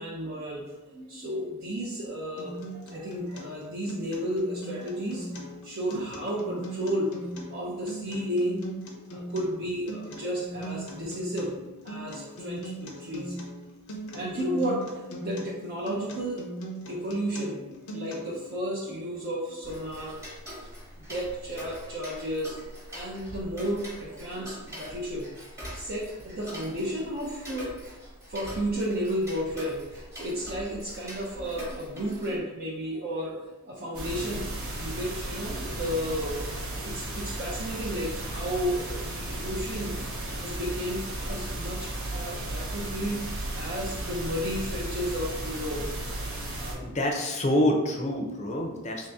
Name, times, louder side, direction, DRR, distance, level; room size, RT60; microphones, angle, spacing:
voice 1, 0.0-8.7 9.1-13.4 14.1-16.4 16.9-20.2 21.0-22.6 22.9-25.3 25.7-27.7 28.3-33.4 33.6-40.1 40.4-45.9 46.6-46.9, equal, 45° right, -5 dB, 0.6 m, -33 dB
Acoustic guitar, 2.4-18.4, right 1 dB, 80° left, 0.7 m, -40 dB
Tick-tock, 19.6-32.4, equal, 15° right, 0.9 m, -43 dB
sound 1, 33.9-46.7, right 1 dB, 70° right, 0.9 m, -34 dB
voice 2, 46.8-49.1, left 1 dB, 30° left, 1 dB, 0.5 m, -26 dB
3.3 x 2.7 x 3.5 m, 1.2 s
head